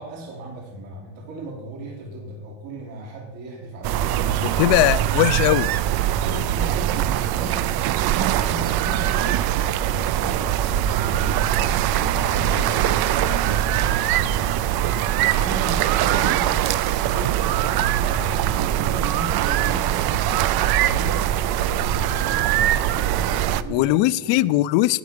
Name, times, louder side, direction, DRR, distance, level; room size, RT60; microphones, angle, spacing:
voice 1, 0.0-5.0 6.1-15.0 15.3-16.7 17.0-22.7 23.2-24.4, right 2 dB, 70° right, 3.2 m, -36 dB
sound 1, 3.8-23.6, right 12 dB, 55° right, 0.5 m, -22 dB
voice 2, 4.6-5.7 23.7-25.0, left 17 dB, 65° left, 0.6 m, -19 dB
17.5 x 5.9 x 5.2 m
cardioid pair, 150°, 47 cm